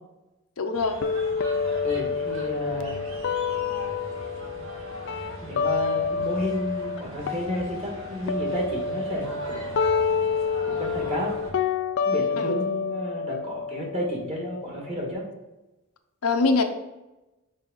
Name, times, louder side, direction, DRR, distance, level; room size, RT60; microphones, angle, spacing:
voice 1, 0.6-1.0 12.4-12.6 16.2-16.6, left 3 dB, 80° left, 6 dB, 0.7 m, -23 dB
sound 1, 0.7-11.5, equal, 65° right, 1.8 m, -41 dB
sound 2, 1.0-7.0 7.2-15.0, left 5 dB, 55° left, 0.3 m, -28 dB
voice 2, 1.8-3.0 5.4-9.8 10.6-11.3 12.1-15.2, left 1 dB, 30° right, -2 dB, 1.9 m, -31 dB
6.4 x 4.9 x 3.9 m, 1.0 s
head